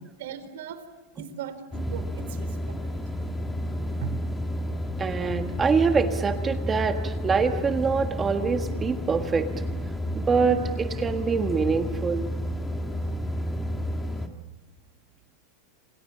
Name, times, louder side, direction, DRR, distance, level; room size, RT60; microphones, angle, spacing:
voice 1, 0.2-0.8 1.2-2.8 4.0-4.2, right 9 dB, 75° right, 11 dB, 4.3 m, -38 dB
sound 1, 1.7-14.3, equal, 10° left, 2.1 m, -31 dB
voice 2, 5.0-9.5 10.1-12.3, right 5 dB, 15° right, 6 dB, 1.4 m, -25 dB
29.0 x 27.5 x 7.3 m, 1.2 s
supercardioid pair, 165°, 0 cm